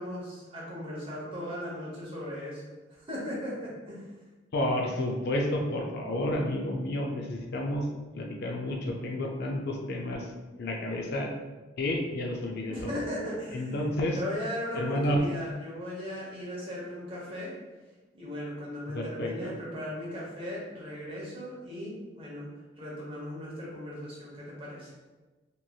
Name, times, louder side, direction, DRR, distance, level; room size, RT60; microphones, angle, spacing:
voice 1, 0.0-2.6 2.9-4.1 12.7-17.5 18.1-22.5 22.8-24.9, equal, 30° right, -5 dB, 0.9 m, -37 dB
voice 2, 4.5-7.9 8.1-10.3 10.6-11.3 11.8-12.9 13.5-14.2 14.8-15.2 18.9-19.5, left 1 dB, 60° left, 2 dB, 0.4 m, -30 dB
2.9 x 2.7 x 2.3 m, 1.2 s
head